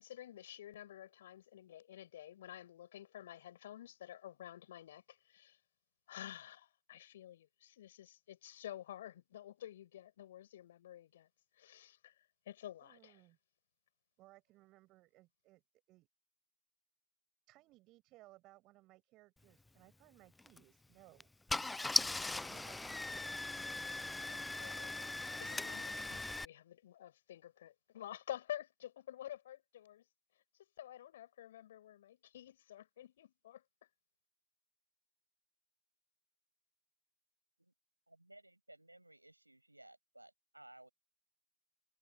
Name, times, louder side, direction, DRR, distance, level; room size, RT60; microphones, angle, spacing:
voice 1, 0.0-5.6 6.1-11.3 11.6-12.1 12.5-13.2 21.7-21.8 23.8-30.0 30.8-33.6, left 12 dB, 55° left, 5.2 m, -50 dB
voice 2, 12.8-13.4 14.2-15.6 15.9-16.1 17.5-21.3 21.8-21.9 22.3-22.8, right 19 dB, 30° right, 7.6 m, -63 dB
Car / Engine starting, 20.4-20.6 21.2-21.3 21.5-26.4, left 2 dB, 5° left, 0.4 m, -39 dB
voice 3, 38.1-40.9, right 1 dB, 90° right, 6.0 m, -59 dB
figure-of-eight pair, 110°, 0 cm